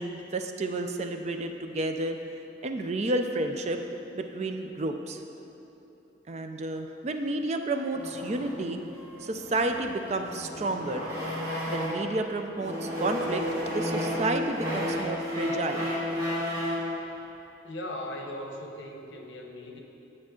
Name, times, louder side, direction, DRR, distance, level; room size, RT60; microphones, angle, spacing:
voice 1, 0.0-2.2 2.6-3.8 4.2-5.2 6.3-8.8 9.2-11.1 11.7-15.9, right 2 dB, 35° right, 6 dB, 0.4 m, -31 dB
sound 1, 7.9-12.1 12.6-16.9, left 1 dB, 20° right, 1.9 m, -32 dB
voice 2, 17.6-19.8, left 1 dB, 80° left, 2 dB, 0.9 m, -38 dB
9.6 x 6.5 x 3.7 m, 3.0 s
head